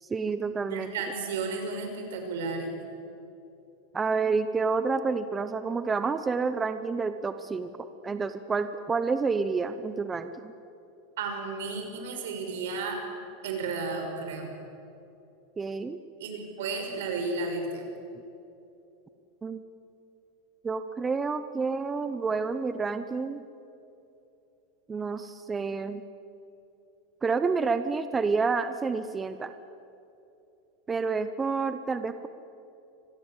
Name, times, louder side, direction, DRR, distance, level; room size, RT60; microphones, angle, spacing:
voice 1, 0.0-0.9 3.9-7.7 8.0-10.5 15.6-16.0 19.4-19.6 20.6-23.4 24.9-26.0 27.2-29.5 30.9-32.3, right 4 dB, 15° right, 11 dB, 0.7 m, -29 dB
voice 2, 0.7-2.8 11.2-13.0 13.4-14.5 16.2-17.9, right 4 dB, 80° right, 4 dB, 5.9 m, -33 dB
25.0 x 19.0 x 8.4 m, 2.8 s
supercardioid pair, 160°, 0 cm